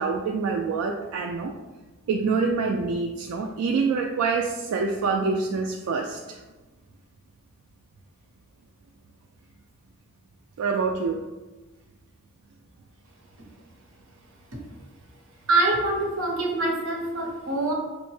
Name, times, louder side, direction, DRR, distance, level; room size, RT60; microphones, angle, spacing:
voice 1, 0.0-1.5 2.1-6.4 10.6-11.2, right 4 dB, 85° right, 1 dB, 0.3 m, -26 dB
voice 2, 15.5-17.7, right 2 dB, 65° right, 0 dB, 0.8 m, -24 dB
5.1 x 2.1 x 3.1 m, 1.2 s
head